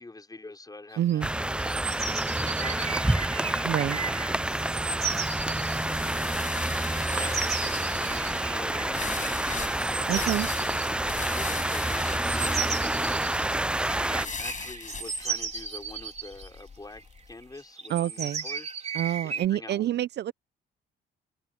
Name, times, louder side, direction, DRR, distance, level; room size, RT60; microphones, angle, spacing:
voice 1, 0.0-5.5 6.9-7.6 8.3-9.5 10.1-10.7 11.2-18.7 19.2-19.9, left 2 dB, 20° left, 5.7 m, -46 dB
voice 2, 1.0-1.3 3.6-4.0 10.1-10.5 17.9-18.4 18.9-20.3, right 12 dB, 60° right, 0.5 m, -27 dB
sound 1, 1.1-5.9 6.8-16.6 16.9-17.0 17.3-19.5, right 6 dB, 35° right, 4.0 m, -36 dB
sound 2, 1.2-14.3, right 1 dB, 5° right, 0.3 m, -28 dB
sound 3, 5.1-17.3, left 5 dB, 40° left, 5.5 m, -40 dB
cardioid pair, 90°, 20 cm